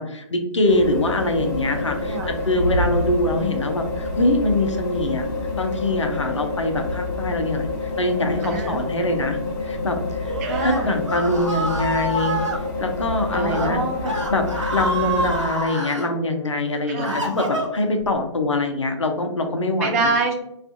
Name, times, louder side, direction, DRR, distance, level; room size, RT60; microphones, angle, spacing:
voice 1, 0.0-5.3 5.6-10.4 10.6-12.4 12.8-13.8 14.3-20.1, left 2 dB, 75° left, 5 dB, 0.5 m, -23 dB
sound 1, 0.7-15.4, left 3 dB, 40° left, 0.7 m, -28 dB
voice 2, 2.0-2.4 8.4-8.8 10.4-11.0 13.3-14.2 16.9-17.2 19.8-20.3, right 3 dB, 30° right, 2 dB, 0.5 m, -25 dB
Screaming, 10.2-12.6 13.4-13.7 14.0-16.1 16.6-18.0, right 1 dB, 85° right, 0.7 m, -27 dB
2.4 x 2.3 x 2.5 m, 0.79 s
figure-of-eight pair, 125°, 15 cm